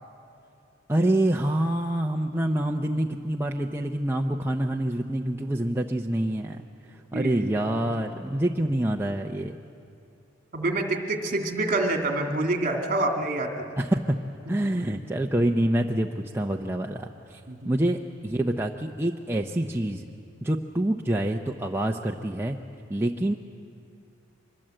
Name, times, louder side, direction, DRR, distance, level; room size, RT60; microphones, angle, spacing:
voice 1, 0.9-6.6 6.9-9.6 13.8-14.2 14.5-17.4 17.7-20.0 20.4-22.6 22.9-23.3, right 1 dB, 10° right, 1 dB, 0.7 m, -26 dB
voice 2, 7.1-7.8 10.5-13.7 14.4-14.8 17.5-17.8, right 2 dB, 45° right, 3 dB, 2.2 m, -27 dB
24.5 x 21.5 x 7.7 m, 2.6 s
head